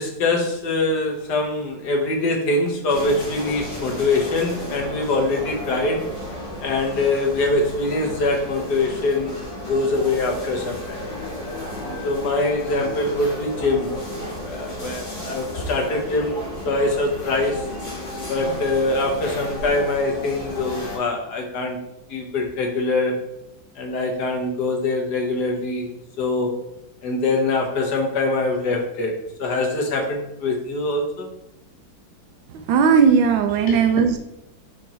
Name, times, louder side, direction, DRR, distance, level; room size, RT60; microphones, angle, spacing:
voice 1, 0.0-6.1 6.6-9.3 9.7-11.0 12.0-14.0 14.4-16.3 16.6-17.7 18.3-21.8 22.1-23.2 23.7-25.9 26.2-26.5 27.0-29.1 29.4-31.3 33.7-33.9, left 2 dB, 60° left, 2 dB, 1.7 m, -23 dB
sound 1, 2.9-21.0, left 1 dB, 30° left, 3.0 m, -33 dB
voice 2, 32.5-34.2, right 6 dB, 80° right, 5 dB, 1.4 m, -17 dB
5.4 x 4.9 x 4.2 m, 0.84 s
omnidirectional pair, 2.1 m